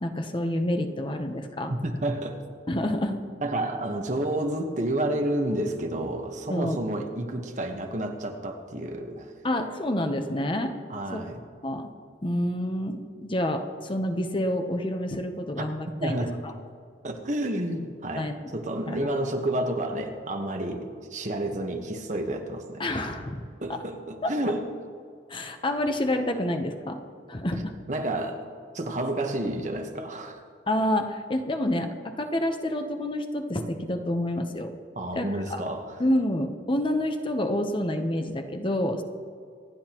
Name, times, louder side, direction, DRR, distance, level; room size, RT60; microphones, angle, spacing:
voice 1, 0.0-1.7 2.7-3.2 6.5-6.8 9.4-10.7 11.1-11.2 11.6-11.9 12.2-16.5 18.2-18.4 18.9-19.0 22.8-23.8 24.2-24.3 25.3-27.0 27.3-27.7 30.7-34.7 35.1-35.6 36.0-39.0, left 1 dB, 30° left, 6 dB, 0.8 m, -28 dB
voice 2, 1.7-2.4 3.4-9.3 10.9-11.4 15.6-15.7 16.0-16.3 17.0-23.0 23.6-24.7 27.9-28.4 28.7-30.4 35.0-35.9, right 1 dB, 45° right, 4 dB, 1.2 m, -30 dB
26.0 x 10.0 x 3.0 m, 2.2 s
head